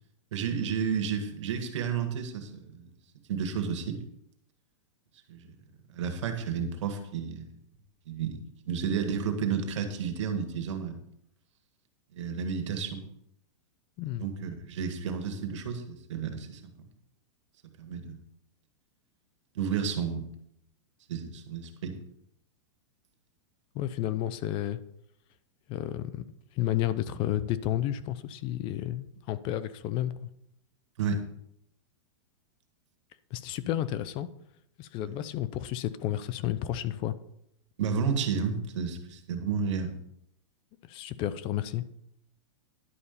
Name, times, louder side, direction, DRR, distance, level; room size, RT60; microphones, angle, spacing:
voice 1, 0.3-2.9 3.3-4.0 5.3-5.5 5.9-7.5 8.1-11.0 12.1-13.0 14.2-16.9 17.8-18.2 19.6-20.3 21.1-22.0 31.0-31.2 35.0-35.1 37.8-39.9, right 6 dB, 75° right, 7 dB, 2.0 m, -31 dB
voice 2, 23.7-24.8 25.7-26.2 26.6-30.3 33.3-34.3 34.8-37.1 40.8-41.8, left 12 dB, 35° left, 15 dB, 0.6 m, -31 dB
11.0 x 5.5 x 6.8 m, 0.74 s
hypercardioid pair, 145°, 15 cm